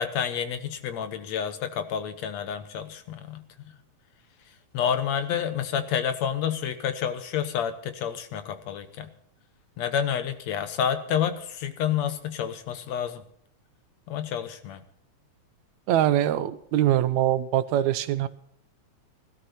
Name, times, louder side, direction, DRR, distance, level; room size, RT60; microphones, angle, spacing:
voice 1, 0.0-3.4 4.7-9.1 9.8-13.2 14.1-14.8, left 8 dB, 70° left, 10 dB, 2.3 m, -29 dB
voice 2, 15.9-18.3, right 12 dB, 80° right, 13 dB, 2.0 m, -23 dB
16.5 x 13.5 x 4.3 m, 0.68 s
omnidirectional pair, 3.4 m